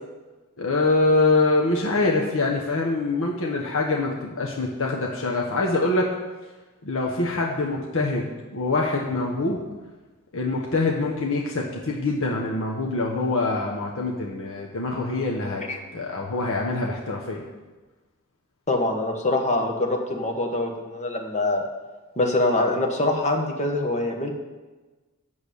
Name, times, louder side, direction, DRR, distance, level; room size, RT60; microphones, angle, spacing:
voice 1, 0.6-6.1 6.8-9.6 10.3-15.6 15.9-17.4, left 2 dB, 65° left, -1 dB, 1.1 m, -24 dB
voice 2, 18.7-21.6 22.2-24.3, left 2 dB, 35° left, 2 dB, 1.4 m, -24 dB
8.2 x 7.0 x 7.0 m, 1.2 s
head